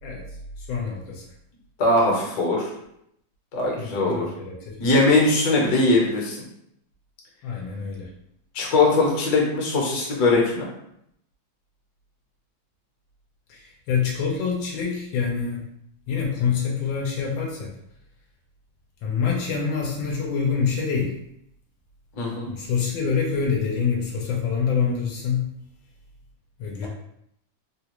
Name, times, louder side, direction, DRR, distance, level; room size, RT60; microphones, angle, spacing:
voice 1, 0.6-1.2 3.8-4.8 7.4-8.1 13.5-15.6 16.1-17.7 19.0-21.2 22.5-25.6 26.6-26.9, left 6 dB, 80° left, -2 dB, 1.4 m, -26 dB
voice 2, 1.8-2.7 3.5-4.3 4.8-6.4 8.5-10.7 22.2-22.5, left 2 dB, 60° left, -2 dB, 1.3 m, -20 dB
3.4 x 2.3 x 2.9 m, 0.76 s
omnidirectional pair, 2.1 m